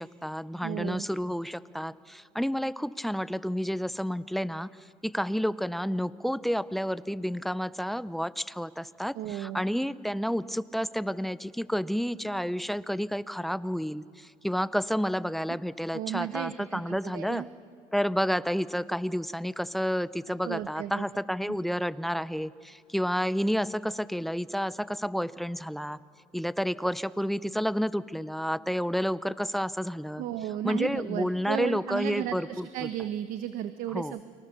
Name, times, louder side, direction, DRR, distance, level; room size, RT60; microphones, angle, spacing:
voice 1, 0.0-4.7 5.0-17.4 17.9-26.0 26.3-30.2 30.6-32.9 33.9-34.1, equal, ahead, 16 dB, 0.7 m, -30 dB
voice 2, 0.6-1.1 9.1-9.6 15.9-17.5 20.4-21.1 30.2-34.3, right 12 dB, 80° right, 11 dB, 1.0 m, -34 dB
29.5 x 23.5 x 6.9 m, 2.4 s
cardioid pair, 95°, 14 cm